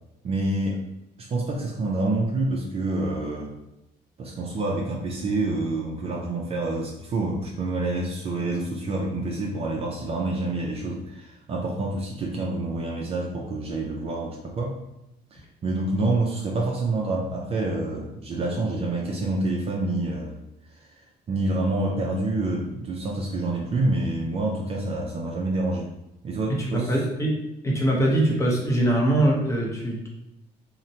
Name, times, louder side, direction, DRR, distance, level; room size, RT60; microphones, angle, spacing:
voice 1, 0.2-0.9 1.2-3.5 4.2-14.7 15.3-20.4 20.8-20.9 21.3-25.9 26.2-26.9, right 2 dB, 35° right, -2 dB, 0.4 m, -27 dB
voice 2, 26.5-30.1, right 1 dB, 15° left, -2 dB, 0.7 m, -23 dB
2.8 x 2.1 x 2.7 m, 0.91 s
cardioid pair, 110°, 17 cm